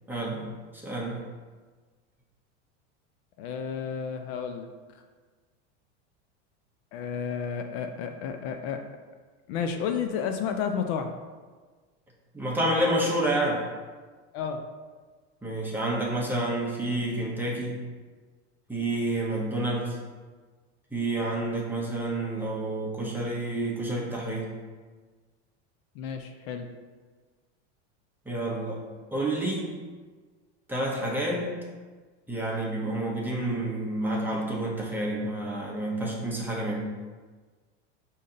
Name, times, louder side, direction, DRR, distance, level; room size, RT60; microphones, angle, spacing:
voice 1, 0.1-1.3 12.3-13.7 15.4-17.9 18.7-20.0 20.9-24.5 28.3-28.8 29.1-29.8 30.7-31.6 32.3-36.9, right 1 dB, 5° right, -4 dB, 0.8 m, -29 dB
voice 2, 3.4-4.7 6.9-8.8 9.5-11.1 14.3-14.6 26.0-26.7, left 7 dB, 60° left, 6 dB, 0.5 m, -31 dB
5.1 x 2.8 x 3.7 m, 1.4 s
supercardioid pair, 125°, 35 cm